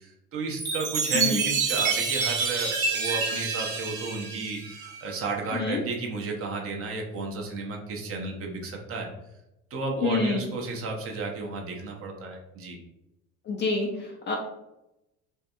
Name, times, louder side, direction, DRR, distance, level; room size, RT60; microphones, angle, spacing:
voice 1, 0.0-9.1 9.7-12.8, right 3 dB, 30° right, 1 dB, 0.7 m, -33 dB
Chime, 0.6-5.2, right 5 dB, 55° right, 1.0 m, -28 dB
voice 2, 10.0-10.4 13.5-14.4, left 4 dB, 25° left, 0 dB, 0.4 m, -27 dB
3.3 x 2.6 x 2.3 m, 0.89 s
figure-of-eight pair, 55°, 43 cm